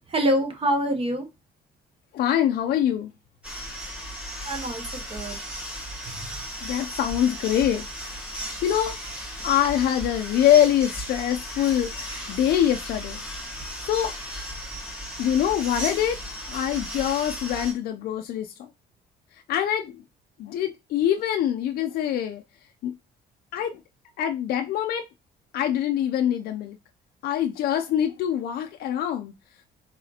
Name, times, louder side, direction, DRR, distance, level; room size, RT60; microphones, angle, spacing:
voice 1, 0.1-1.3 4.4-5.4 6.0-6.2, right 1 dB, 35° right, 0.8 m, -26 dB
voice 2, 2.1-3.1 6.6-7.9 8.6-9.0 9.4-14.1 15.2-16.2 16.5-18.7 19.3-20.0 20.4-22.4 22.8-22.9 23.5-23.8 24.2-25.1 25.5-26.8 27.2-29.3, left 10 dB, 65° left, 0.4 m, -24 dB
sound 1, 3.4-17.7, equal, 5° right, 1.5 m, -35 dB
4.1 x 4.0 x 2.8 m
cardioid pair, 110°, 17 cm